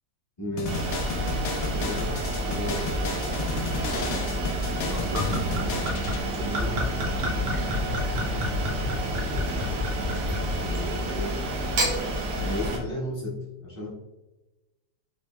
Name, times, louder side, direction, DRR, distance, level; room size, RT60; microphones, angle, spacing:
voice 1, 0.4-1.2 1.7-2.2 2.5-3.4 4.6-6.9 8.9-10.0 10.6-11.5 12.4-13.9, left 1 dB, 25° left, -7 dB, 0.7 m, -36 dB
sound 1, 0.6-6.2, left 2 dB, 75° left, 0.7 m, -33 dB
sound 2, 0.7-12.8, right 1 dB, 85° right, 1.5 m, -30 dB
Gurgling / Chink clink / Liquid, 4.7-10.9 11.6-12.0, equal, 65° right, 1.4 m, -30 dB
4.3 x 3.0 x 2.2 m, 1.1 s
omnidirectional pair, 2.1 m